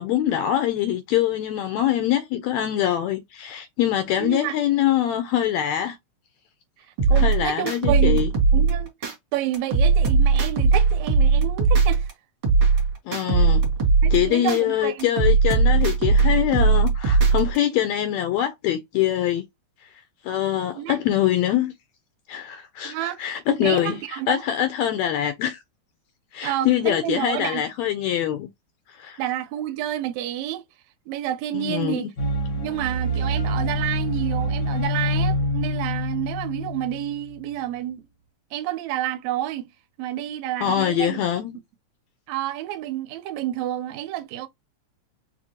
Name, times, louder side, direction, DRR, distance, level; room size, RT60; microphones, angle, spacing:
voice 1, 0.0-6.0 7.2-8.3 13.1-13.6 14.1-19.4 20.2-21.7 22.3-25.6 26.3-28.5 29.0-29.2 31.5-32.0 40.6-41.6, left 11 dB, 75° left, 1.7 m, -24 dB
voice 2, 4.2-4.6 7.1-8.3 8.5-8.9 9.3-12.1 14.0-15.1 20.7-21.0 22.8-24.4 26.4-27.6 29.2-30.6 31.1-32.1 32.6-38.1 38.5-39.7 40.0-41.2 42.3-44.5, right 13 dB, 80° right, 1.9 m, -29 dB
sound 1, 7.0-9.1 9.5-12.1 12.4-14.6 15.0-17.6, right 4 dB, 45° right, 2.0 m, -19 dB
sound 2, 32.2-37.5, equal, 55° left, 1.2 m, -26 dB
5.1 x 2.7 x 2.7 m
omnidirectional pair, 3.5 m